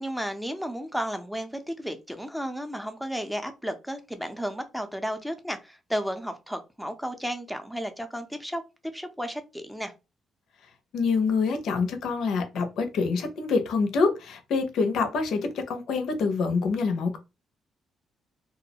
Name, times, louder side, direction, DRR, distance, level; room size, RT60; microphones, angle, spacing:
voice 1, 0.0-8.6 8.9-9.9, equal, ahead, 0.5 m, -33 dB
voice 2, 10.9-17.2, left 4 dB, 75° left, 0.5 m, -26 dB
2.3 x 2.0 x 2.7 m
cardioid pair, 90°, 0 cm